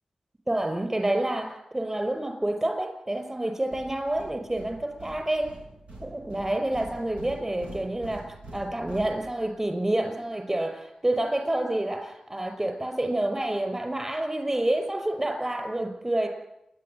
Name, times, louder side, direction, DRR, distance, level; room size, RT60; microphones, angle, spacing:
voice 1, 0.5-5.5 6.0-8.3 8.5-16.3, right 1 dB, 20° right, 5 dB, 5.7 m, -28 dB
sound 1, 3.7-9.7, right 2 dB, 85° right, 5.8 m, -45 dB
29.5 x 11.5 x 9.6 m, 0.86 s
wide cardioid pair, 85°, 2 cm